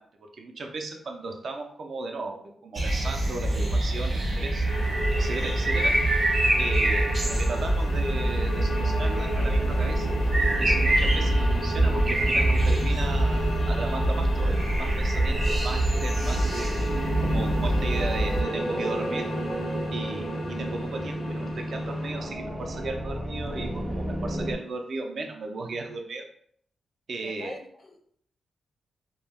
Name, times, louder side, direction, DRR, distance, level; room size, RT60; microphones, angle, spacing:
voice 1, 0.0-4.7 5.1-6.0 6.6-10.1 10.4-16.8 17.2-19.3 19.9-26.3 27.1-27.5, right 3 dB, 60° right, 3 dB, 0.4 m, -36 dB
sound 1, 2.7-18.4, right 1 dB, 40° right, 0.8 m, -25 dB
sound 2, 4.7-22.2, right 1 dB, 80° left, 0.7 m, -36 dB
sound 3, 7.9-24.6, equal, 5° right, 0.5 m, -32 dB
voice 2, 27.2-28.0, left 2 dB, 45° left, 3 dB, 0.5 m, -43 dB
2.1 x 2.1 x 3.3 m, 0.64 s
cardioid pair, 95°, 0 cm